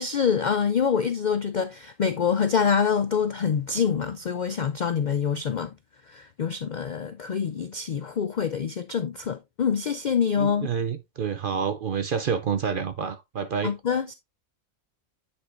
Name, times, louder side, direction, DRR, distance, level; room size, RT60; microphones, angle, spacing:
voice 1, 0.0-5.7 6.1-10.7 13.6-14.1, left 6 dB, 90° left, 0.4 m, -26 dB
voice 2, 10.4-13.7, right 6 dB, 55° right, 0.6 m, -28 dB
9.6 x 5.4 x 2.5 m
omnidirectional pair, 1.5 m